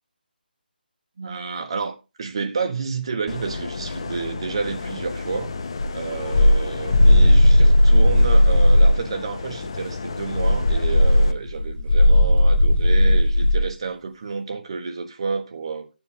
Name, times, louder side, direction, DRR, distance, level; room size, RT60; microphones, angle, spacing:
voice 1, 1.2-5.5 5.9-15.9, right 5 dB, 30° right, 1.1 m, -30 dB
sound 1, 3.3-11.3, left 4 dB, 30° left, 0.6 m, -33 dB
sound 2, 5.8-9.0 10.2-13.7, left 1 dB, 75° left, 1.6 m, -15 dB
10.5 x 7.1 x 3.7 m
hypercardioid pair, 175°, 5 cm